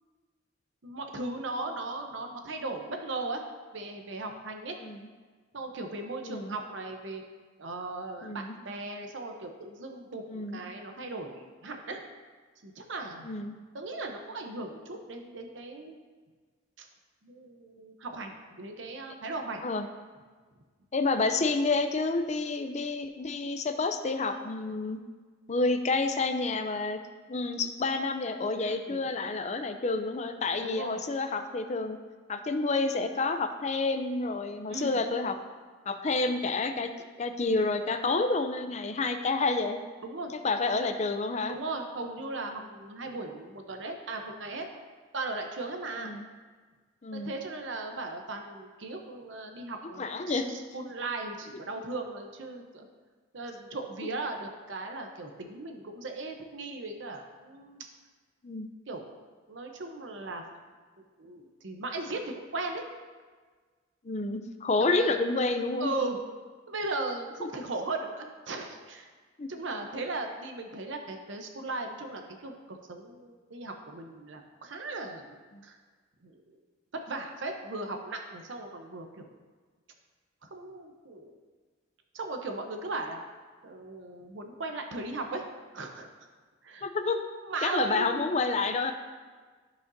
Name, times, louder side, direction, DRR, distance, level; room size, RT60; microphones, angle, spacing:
voice 1, 0.8-3.4 3.7-4.8 5.5-7.2 7.6-12.0 12.6-13.3 13.7-16.0 16.8-16.9 17.2-19.6 28.6-29.1 30.6-31.0 34.7-35.0 40.0-40.3 41.5-44.7 45.1-46.1 47.1-52.9 53.3-57.9 58.9-59.0 59.5-60.4 61.2-62.2 62.5-62.8 64.8-65.2 65.8-66.2 66.7-69.1 69.5-75.8 76.2-76.3 76.9-79.3 80.4-81.4 82.1-83.2 83.6-85.5 85.7-86.1 86.6-86.9 87.3-88.3, right 2 dB, 75° right, 4 dB, 0.8 m, -37 dB
voice 2, 6.2-6.6 8.2-8.6 10.3-10.6 13.2-13.5 19.6-19.9 20.9-25.0 25.5-27.0 27.3-32.0 32.3-35.4 35.9-36.9 37.2-39.8 40.4-41.6 46.0-46.3 47.0-47.3 50.0-50.5 58.4-58.7 64.0-65.9 67.4-67.5 69.4-69.5 75.5-75.6 86.8-87.2 87.6-88.9, left 3 dB, 35° left, 7 dB, 0.5 m, -29 dB
13.5 x 5.1 x 2.7 m, 1.4 s
head